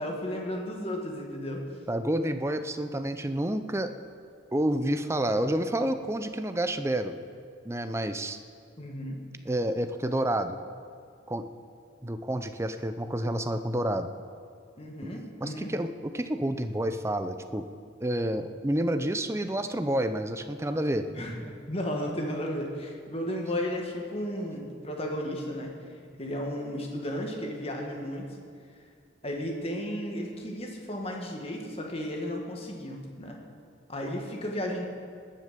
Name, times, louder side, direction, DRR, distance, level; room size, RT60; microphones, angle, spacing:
voice 1, 0.0-1.6 8.8-9.2 14.8-15.7 21.1-25.7 26.2-28.3 29.2-33.4 33.9-34.8, equal, 30° left, 1 dB, 1.8 m, -34 dB
voice 2, 1.9-3.9 4.5-7.2 7.6-8.4 9.5-10.6 11.3-11.4 12.0-14.1 15.4-17.7 18.0-21.1, right 1 dB, 15° right, 9 dB, 0.6 m, -29 dB
19.5 x 6.6 x 6.9 m, 2.2 s
head